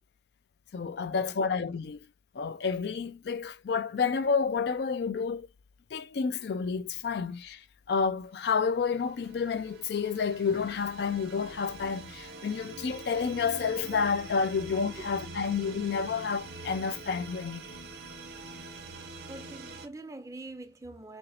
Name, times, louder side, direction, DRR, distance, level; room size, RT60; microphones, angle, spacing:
voice 1, 0.7-2.0 2.4-5.5 5.9-7.6 7.9-17.7, left 5 dB, 60° left, 0.4 m, -30 dB
sound 1, 8.9-19.9, right 3 dB, 60° right, 0.6 m, -44 dB
voice 2, 19.3-21.2, right 2 dB, 15° right, 0.3 m, -44 dB
3.0 x 2.6 x 4.1 m
head